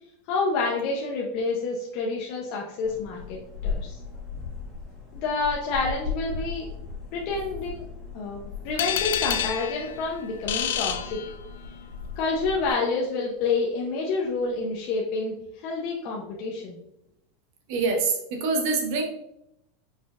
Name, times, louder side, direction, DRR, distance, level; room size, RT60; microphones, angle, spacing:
voice 1, 0.3-4.0 5.1-6.7 7.1-7.8 8.1-11.2 12.2-16.8, left 3 dB, 40° left, -2 dB, 0.7 m, -28 dB
sound 1, 2.8-12.7, left 5 dB, 20° left, 1.3 m, -37 dB
sound 2, 8.8-11.8, left 10 dB, 80° left, 0.3 m, -29 dB
voice 2, 17.7-19.0, right 4 dB, 50° right, 3 dB, 1.0 m, -25 dB
5.1 x 4.2 x 2.4 m, 0.79 s
supercardioid pair, 170°, 0 cm